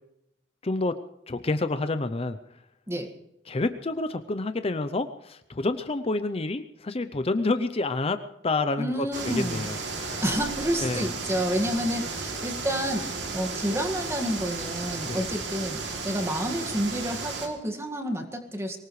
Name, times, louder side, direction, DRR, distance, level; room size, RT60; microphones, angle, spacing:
voice 1, 0.6-1.0 1.3-2.6 3.5-9.8 10.8-11.1 15.0-15.2, left 2 dB, 35° left, 11 dB, 0.6 m, -28 dB
voice 2, 8.8-9.7 10.2-18.8, equal, 15° right, 4 dB, 1.9 m, -29 dB
sound 1, 9.1-17.5, right 4 dB, 70° right, 2.9 m, -34 dB
sound 2, 9.5-13.6, left 3 dB, 65° left, 2.9 m, -47 dB
23.5 x 19.0 x 3.2 m, 0.84 s
head